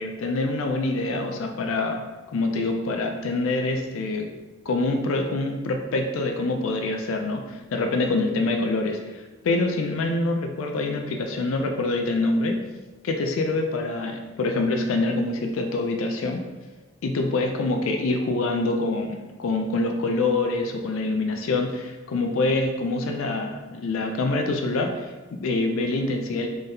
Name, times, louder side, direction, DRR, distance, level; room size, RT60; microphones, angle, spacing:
voice 1, 0.0-2.0 2.3-4.3 4.7-12.6 13.0-16.4 17.0-26.5, left 2 dB, 75° left, 4 dB, 0.4 m, -25 dB
3.7 x 3.3 x 2.7 m, 1.2 s
head